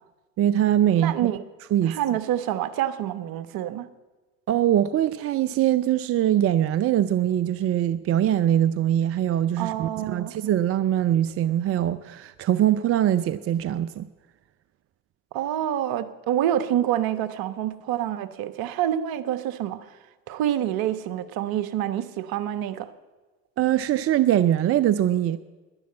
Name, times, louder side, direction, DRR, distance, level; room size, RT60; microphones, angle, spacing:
voice 1, 0.4-1.3 1.7-2.0 4.5-14.1 23.6-25.4, right 11 dB, 35° right, 0.5 m, -22 dB
voice 2, 1.0-1.4 1.9-3.9 9.6-10.3 15.3-19.9 20.3-22.9, right 11 dB, 55° right, 1.2 m, -27 dB
11.5 x 10.5 x 8.6 m
hypercardioid pair, 75°, 43 cm